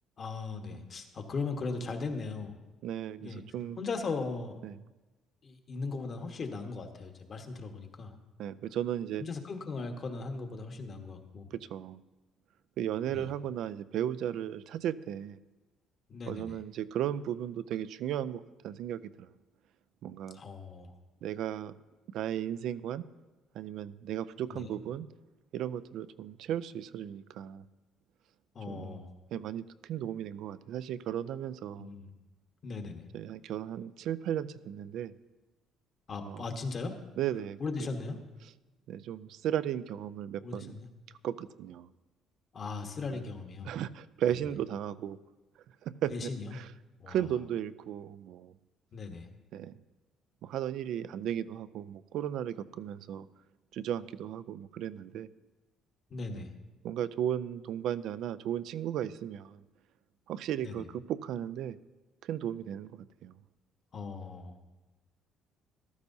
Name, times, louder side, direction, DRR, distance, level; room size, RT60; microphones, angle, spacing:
voice 1, 0.2-2.5 3.2-3.4 3.8-4.6 5.4-8.1 9.2-11.5 13.1-13.3 16.1-16.6 20.3-20.9 24.5-24.8 28.5-29.1 31.8-32.1 32.6-33.0 36.1-37.0 37.6-38.2 40.4-40.9 42.5-43.7 46.1-46.5 47.0-47.2 48.9-49.3 56.1-56.5 60.6-60.8 63.9-64.5, left 4 dB, 45° left, 5 dB, 1.3 m, -38 dB
voice 2, 2.8-3.8 4.6-4.8 8.4-9.2 11.5-12.0 12.8-15.4 16.3-19.3 20.0-20.4 21.2-21.8 22.1-23.1 23.5-25.1 25.5-27.7 28.7-31.9 33.1-35.1 36.2-36.4 37.2-37.6 38.4-38.5 38.9-40.8 41.2-41.9 43.1-43.2 43.6-45.2 45.8-46.7 47.1-48.6 49.5-49.8 50.4-53.3 53.7-55.3 56.3-56.5 56.8-59.6 60.3-61.8 62.2-63.4, right 10 dB, 75° right, 15 dB, 0.4 m, -35 dB
14.5 x 12.0 x 2.7 m, 1.1 s
cardioid pair, 105°, 0 cm